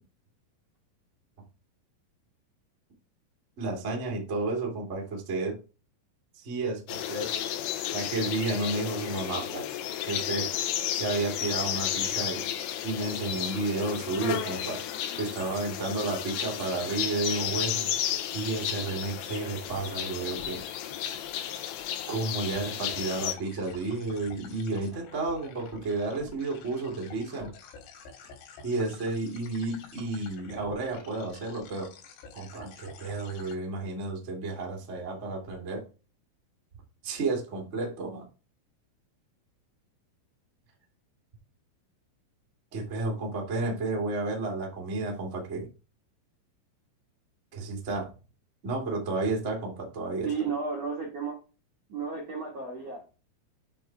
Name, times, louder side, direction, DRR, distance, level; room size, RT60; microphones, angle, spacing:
voice 1, 3.6-5.6 6.4-7.3 7.9-9.6 10.0-10.5 10.9-12.5 12.8-14.8 15.2-17.9 18.3-20.6 22.1-27.5 28.6-31.9 32.3-35.8 37.0-38.2 42.7-45.7 47.5-48.1 48.6-50.3, right 3 dB, 60° right, 0.7 m, -32 dB
sound 1, 6.9-23.3, left 11 dB, 85° left, 2.2 m, -33 dB
sound 2, 18.1-33.6, left 5 dB, 70° left, 3.9 m, -49 dB
voice 2, 50.2-51.4 51.9-53.0, right 5 dB, 85° right, 1.4 m, -33 dB
9.1 x 3.8 x 4.5 m
omnidirectional pair, 5.9 m